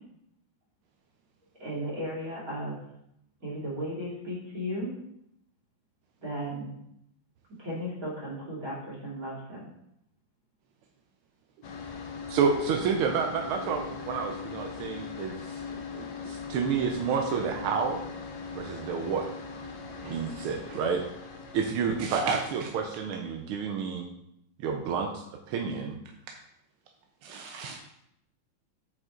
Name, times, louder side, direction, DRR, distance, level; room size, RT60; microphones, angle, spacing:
voice 1, 1.6-2.8 3.4-4.9 6.2-6.8 7.6-9.7, equal, 40° right, -6 dB, 3.2 m, -35 dB
Mac Pro Fans Speed Up, 11.6-23.5, left 5 dB, 60° left, 1.3 m, -41 dB
voice 2, 12.3-15.3 16.3-18.0 18.5-19.3 20.1-21.0 21.5-24.1 24.6-25.9, right 6 dB, 85° right, 3 dB, 1.6 m, -29 dB
voice 3, 15.7-16.3 20.0-20.2 20.7-20.8 22.0-22.4 27.2-27.8, right 6 dB, 70° right, 3 dB, 1.2 m, -38 dB
7.8 x 5.1 x 3.8 m, 0.78 s
omnidirectional pair, 2.3 m